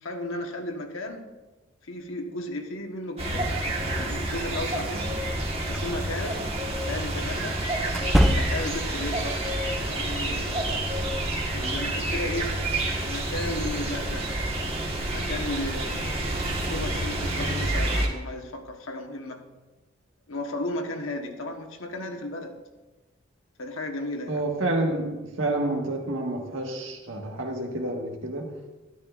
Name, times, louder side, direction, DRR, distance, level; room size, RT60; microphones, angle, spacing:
voice 1, 0.0-1.3 1.8-5.3 5.7-6.5 6.8-7.6 8.2-9.5 9.9-10.8 11.5-12.6 13.0-14.4 15.1-19.5 20.3-22.6 23.6-24.5, left 1 dB, 75° left, 1.3 m, -35 dB
sound 1, 3.2-18.1, right 1 dB, 30° right, 1.4 m, -28 dB
sound 2, 5.7-5.8 7.9-8.9, equal, ahead, 0.4 m, -23 dB
voice 2, 24.3-28.6, right 2 dB, 70° right, 1.6 m, -29 dB
13.0 x 12.0 x 2.5 m
head